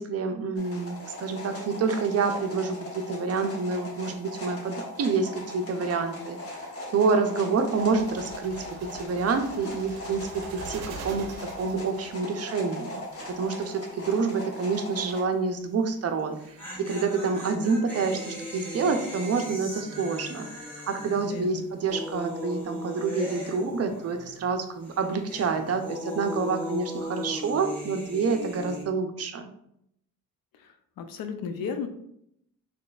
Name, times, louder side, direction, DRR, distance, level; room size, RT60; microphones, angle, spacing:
voice 1, 0.0-6.7 6.9-13.0 13.3-20.5 20.9-29.5, right 4 dB, 45° right, 6 dB, 0.5 m, -28 dB
sound 1, 0.6-15.2, left 1 dB, 40° left, 1.0 m, -40 dB
sound 2, 7.7-12.2, right 3 dB, 90° right, 0.6 m, -43 dB
sound 3, 12.8-13.2 13.4-13.5 16.2-24.5 24.8-28.8, equal, 5° left, 1.4 m, -38 dB
voice 2, 21.2-21.7 30.5-31.9, left 6 dB, 70° left, 7 dB, 0.5 m, -35 dB
3.9 x 3.1 x 2.3 m, 0.75 s
cardioid pair, 90°, 36 cm